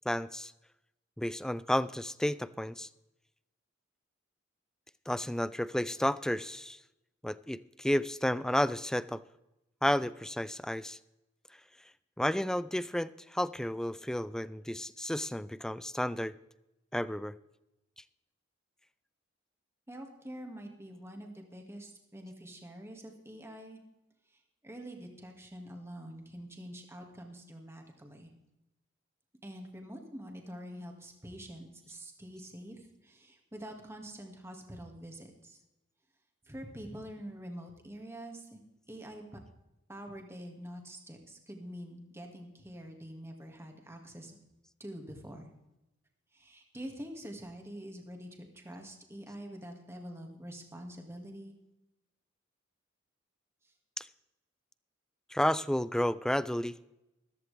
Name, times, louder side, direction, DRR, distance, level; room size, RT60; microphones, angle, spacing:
voice 1, 0.1-0.5 1.2-2.9 5.1-6.8 7.2-9.2 9.8-11.0 12.2-16.3 16.9-17.3 54.0-54.1 55.3-56.8, left 1 dB, 5° left, 17 dB, 0.3 m, -31 dB
voice 2, 19.9-23.8 24.6-28.3 29.4-35.6 36.5-38.6 38.9-39.2 39.9-44.3 44.8-45.5 46.3-51.5, equal, 15° right, 2 dB, 2.1 m, -46 dB
14.5 x 14.0 x 3.4 m, 0.93 s
head